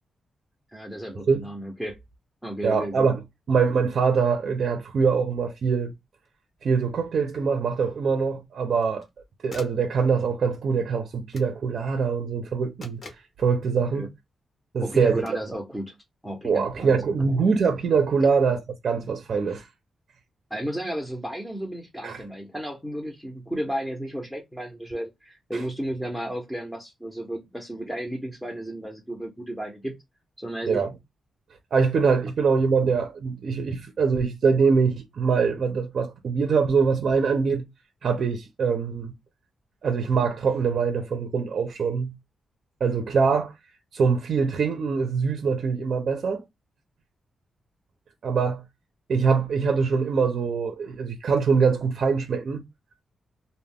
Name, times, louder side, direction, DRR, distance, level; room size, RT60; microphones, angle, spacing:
voice 1, 0.7-2.0 2.4-3.1 13.9-14.1 14.8-16.0 16.2-17.1 20.5-29.9 30.4-30.8, right 1 dB, ahead, 0.6 m, -33 dB
voice 2, 2.6-3.2 3.5-5.9 6.6-9.0 9.4-13.0 13.4-14.1 14.7-15.2 16.4-19.7 22.0-22.2 25.5-25.6 30.7-30.9 31.7-37.6 38.0-39.1 39.8-42.1 42.8-43.5 43.9-46.4 48.2-48.6 49.1-52.6, right 5 dB, 60° right, 0.5 m, -23 dB
sound 1, 6.2-6.3 8.7-9.1 9.5-9.9 11.3-11.6 12.8-13.3 15.2-15.5, left 3 dB, 45° left, 0.7 m, -44 dB
2.3 x 2.1 x 3.5 m
wide cardioid pair, 120°, 0 cm